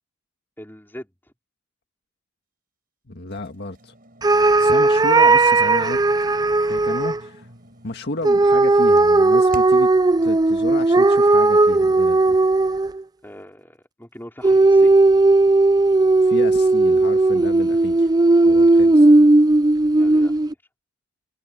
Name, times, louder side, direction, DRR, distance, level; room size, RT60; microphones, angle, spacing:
voice 1, 0.6-1.1 6.6-6.9 13.2-14.9 19.9-20.5, equal, 10° left, 4.9 m, -41 dB
voice 2, 3.1-3.9 4.6-6.0 6.6-7.5 7.8-9.9 10.2-12.4 16.2-18.1 18.4-19.1, left 2 dB, 55° left, 1.8 m, -32 dB
sound 1, 3.3-10.0, right 1 dB, 45° right, 6.4 m, -47 dB
sound 2, 4.2-7.2 8.2-13.0 14.4-20.5, right 2 dB, 20° right, 0.4 m, -16 dB
head